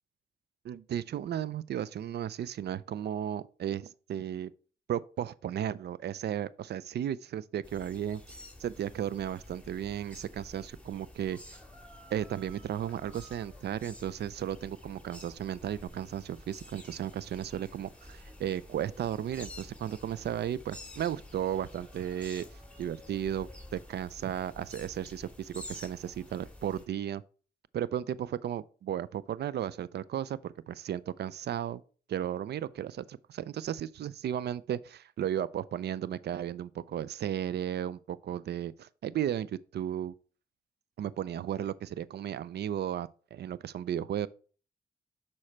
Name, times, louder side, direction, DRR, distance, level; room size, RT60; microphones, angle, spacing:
voice 1, 0.6-4.5 4.9-8.2 8.6-11.4 12.1-22.5 22.8-27.2 27.7-31.8 32.1-40.1 41.0-44.3, right 10 dB, 75° right, 0.4 m, -34 dB
sound 1, 7.6-26.8, left 1 dB, 5° left, 1.9 m, -50 dB
6.4 x 4.3 x 4.4 m
cardioid pair, 50°, 17 cm